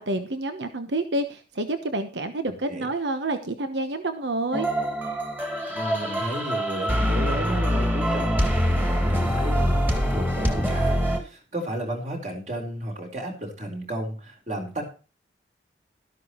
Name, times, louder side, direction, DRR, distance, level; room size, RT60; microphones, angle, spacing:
voice 1, 0.0-4.7, right 2 dB, 80° right, 8 dB, 1.1 m, -28 dB
voice 2, 2.5-2.9 5.7-14.8, right 1 dB, 40° right, 3 dB, 4.1 m, -33 dB
sound 1, 4.5-11.2, equal, 10° right, 2.3 m, -24 dB
13.0 x 12.0 x 3.1 m, 0.35 s
head